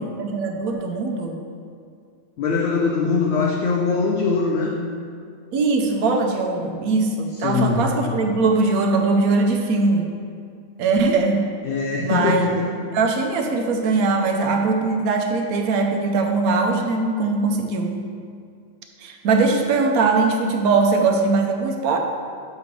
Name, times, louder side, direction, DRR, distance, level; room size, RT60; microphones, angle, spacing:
voice 1, 0.0-1.4 5.5-10.1 10.8-11.5 12.0-12.5 12.9-18.0 19.0-22.0, right 3 dB, 85° right, 3 dB, 1.1 m, -21 dB
voice 2, 2.4-4.8 7.4-8.2 11.6-12.6, left 4 dB, 65° left, 0 dB, 0.7 m, -22 dB
7.6 x 3.1 x 5.1 m, 2.2 s
omnidirectional pair, 1.5 m